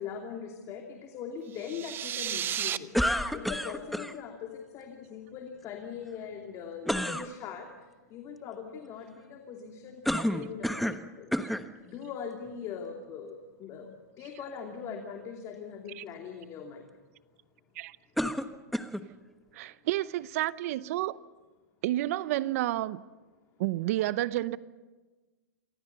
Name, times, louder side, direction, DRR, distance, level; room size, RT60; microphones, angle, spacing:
voice 1, 0.0-2.9 3.3-11.3 11.8-13.9 14.2-16.9, left 7 dB, 35° left, 2.7 m, -41 dB
sound 1, 1.5-2.8, right 10 dB, 25° right, 0.8 m, -33 dB
sound 2, 2.9-4.1 6.9-7.3 10.1-11.0 11.3-11.7 12.5-12.6 18.2-19.1, equal, ahead, 1.1 m, -29 dB
voice 2, 19.5-21.2 21.8-23.0 23.6-24.6, right 15 dB, 55° right, 0.8 m, -30 dB
27.5 x 23.0 x 6.9 m
hypercardioid pair, 135°, 9 cm